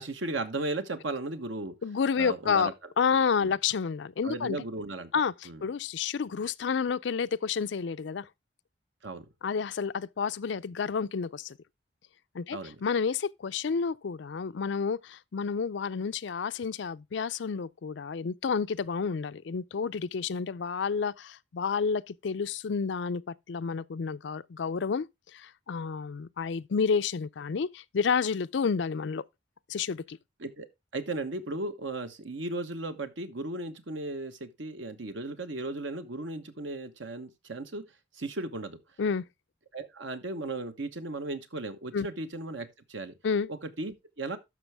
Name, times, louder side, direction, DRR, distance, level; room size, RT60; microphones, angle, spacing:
voice 1, 0.0-1.7 2.2-2.7 3.4-3.5 4.2-5.1 5.4-5.6 9.0-9.2 12.5-12.7 30.4-30.7 30.9-37.8 38.1-38.8 39.7-43.1 43.5-44.4, right 2 dB, 85° right, 1.2 m, -36 dB
voice 2, 1.8-2.7 3.0-4.6 5.1-8.3 9.4-11.6 12.3-25.1 25.3-29.2 29.7-30.2 39.0-39.2 41.9-42.1 43.2-43.5, left 5 dB, 70° left, 0.4 m, -30 dB
12.5 x 6.0 x 3.5 m
head